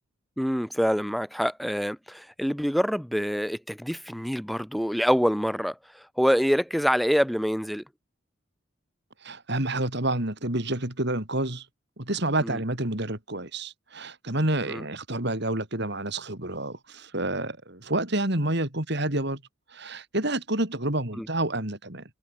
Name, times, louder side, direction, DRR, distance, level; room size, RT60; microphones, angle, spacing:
voice 1, 0.4-5.8 6.2-7.8 12.4-12.6 14.7-14.8 21.2-21.3, equal, ahead, 3.2 m, -26 dB
voice 2, 9.2-11.7 12.0-19.4 19.7-22.0, right 1 dB, 55° right, 3.9 m, -29 dB
head